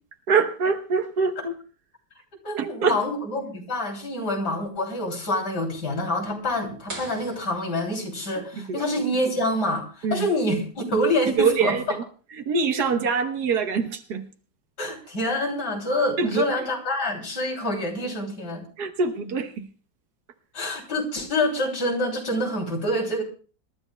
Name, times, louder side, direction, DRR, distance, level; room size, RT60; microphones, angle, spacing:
voice 1, 0.3-1.5 2.6-3.0 8.6-8.8 10.0-10.3 11.4-12.0 12.3-14.3 16.2-16.7 18.8-19.7, right 5 dB, 70° right, 1.7 m, -24 dB
voice 2, 2.4-11.8 14.8-18.6 20.5-23.2, left 1 dB, 75° left, 3.7 m, -26 dB
sound 1, 6.9-8.6, right 2 dB, 50° right, 4.2 m, -41 dB
26.5 x 12.5 x 2.3 m
omnidirectional pair, 1.8 m